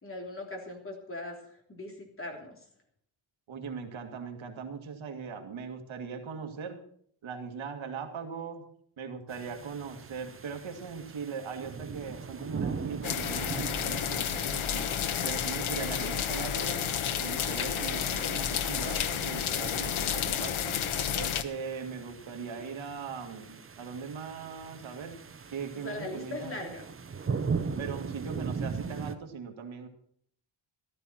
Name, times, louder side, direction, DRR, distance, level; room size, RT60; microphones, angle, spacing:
voice 1, 0.0-2.6 16.0-16.2 25.7-26.8, left 2 dB, 25° left, 1 dB, 3.4 m, -40 dB
voice 2, 3.5-6.8 7.2-8.6 9.0-14.9 15.2-16.8 17.2-20.8 21.1-25.1 25.5-26.7 27.8-29.9, right 5 dB, 75° right, 4 dB, 2.2 m, -40 dB
sound 1, 9.3-29.2, right 5 dB, 25° right, 0.9 m, -40 dB
sound 2, 13.0-21.4, left 8 dB, 85° left, 1.2 m, -31 dB
14.5 x 14.0 x 4.3 m, 0.64 s
wide cardioid pair, 160°, 47 cm